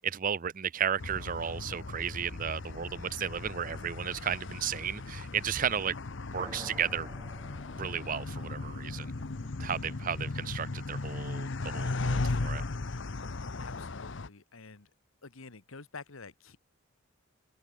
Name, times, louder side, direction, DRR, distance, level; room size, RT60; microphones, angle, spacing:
voice 1, 0.0-6.0 6.3-7.1 7.7-9.1 9.6-12.6, right 8 dB, 40° right, 0.5 m, -34 dB
sound 1, 1.0-14.3, left 3 dB, 60° left, 0.9 m, -37 dB
sound 2, 6.4-10.3, right 1 dB, 15° right, 2.6 m, -52 dB
sound 3, 7.4-7.7 8.3-10.7, equal, 30° left, 8.0 m, -60 dB
voice 2, 13.6-14.9 15.2-16.6, left 4 dB, 85° left, 1.4 m, -48 dB
open air
head